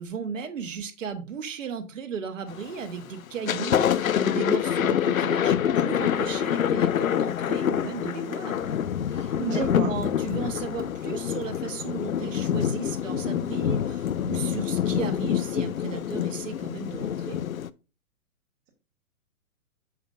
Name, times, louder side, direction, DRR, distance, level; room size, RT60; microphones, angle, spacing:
voice 1, 0.0-8.7 9.1-17.4, right 6 dB, 60° right, 7 dB, 1.3 m, -36 dB
Thunder, 2.5-2.9 3.3-17.7, left 9 dB, 65° left, 0.6 m, -26 dB
voice 2, 9.3-9.9, right 6 dB, 25° right, -2 dB, 2.1 m, -29 dB
8.9 x 7.0 x 2.5 m, 0.31 s
figure-of-eight pair, 120°, 44 cm